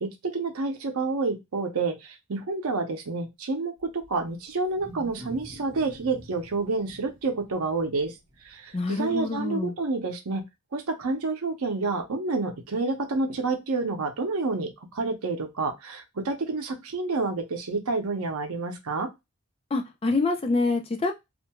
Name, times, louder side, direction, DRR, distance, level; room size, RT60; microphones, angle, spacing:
voice 1, 0.0-8.1 8.4-10.4 10.7-19.1, right 3 dB, 85° right, 5 dB, 0.7 m, -29 dB
Wild animals, 3.8-8.8, equal, 35° right, 0.7 m, -47 dB
voice 2, 8.7-9.7 19.7-21.1, left 3 dB, 25° left, 4 dB, 0.4 m, -26 dB
2.5 x 2.2 x 2.8 m, 0.21 s
head